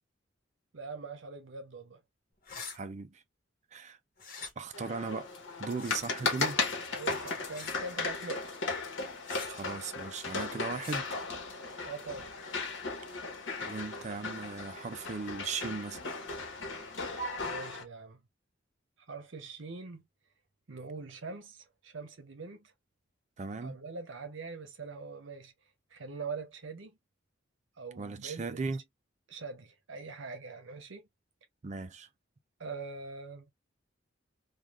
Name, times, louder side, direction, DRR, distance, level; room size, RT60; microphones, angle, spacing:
voice 1, 0.7-2.0 6.9-8.5 11.8-12.3 17.4-18.2 19.1-20.0 20.7-22.7 23.6-25.5 25.9-27.0 27.8-28.6 29.3-31.1 32.6-33.5, right 4 dB, 80° right, 0.8 m, -43 dB
sound 1, 2.4-2.8 4.2-4.5 5.7-6.0 7.5-7.8 9.2-9.5 10.8-11.0, left 4 dB, 45° left, 1.1 m, -43 dB
voice 2, 2.7-3.2 3.7-4.0 4.6-5.3 5.6-6.6 9.4-11.1 13.6-16.0 23.4-23.8 28.0-28.8 31.6-32.1, right 4 dB, 35° right, 0.4 m, -37 dB
sound 2, 4.7-17.8, left 3 dB, 80° left, 1.0 m, -36 dB
3.2 x 2.4 x 2.3 m
head